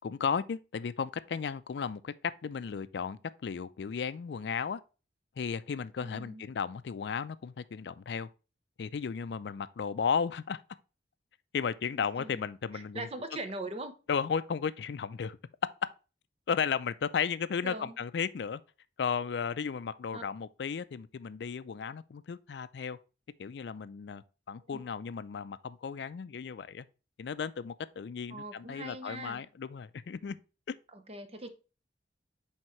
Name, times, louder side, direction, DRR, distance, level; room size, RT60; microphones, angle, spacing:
voice 1, 0.0-2.1 2.4-4.8 5.4-8.3 8.8-10.6 11.5-13.1 14.1-15.4 16.5-18.6 19.0-23.0 23.4-26.9 27.2-30.4 30.7-30.8, left 6 dB, 65° left, 0.4 m, -34 dB
voice 2, 6.0-6.5 12.2-12.4 12.7-13.9 17.6-18.0 20.1-20.2 24.6-24.8 28.3-29.5 30.9-31.5, right 2 dB, 35° right, 0.7 m, -41 dB
8.9 x 3.6 x 3.0 m
head